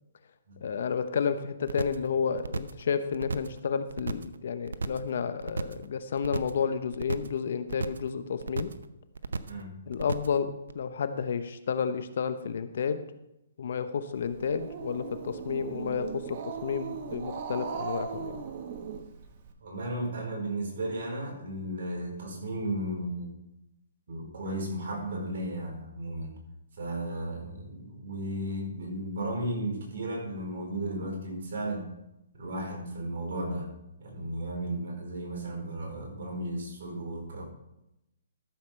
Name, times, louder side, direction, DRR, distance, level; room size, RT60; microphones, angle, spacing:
voice 1, 0.6-8.7 9.9-13.0 13.6-18.4, left 6 dB, 60° left, 11 dB, 0.9 m, -31 dB
sound 1, 1.7-2.1 2.4-2.8 3.1-3.6 3.9-4.4 4.7-5.1 5.4-5.9 6.2-6.6 6.9-7.4 7.7-8.1 8.4-8.9 9.2-9.6 9.9-10.4 10.7-10.8, right 4 dB, 90° right, 0.7 m, -34 dB
voice 2, 9.5-9.8 19.6-23.4 24.1-26.3 26.8-31.9 32.3-33.7 34.0-37.4, right 1 dB, 60° right, -1 dB, 4.7 m, -34 dB
Growling, 14.2-19.5, right 7 dB, 40° right, 1.3 m, -38 dB
13.5 x 7.2 x 4.6 m, 0.87 s
hypercardioid pair, 155°, 0 cm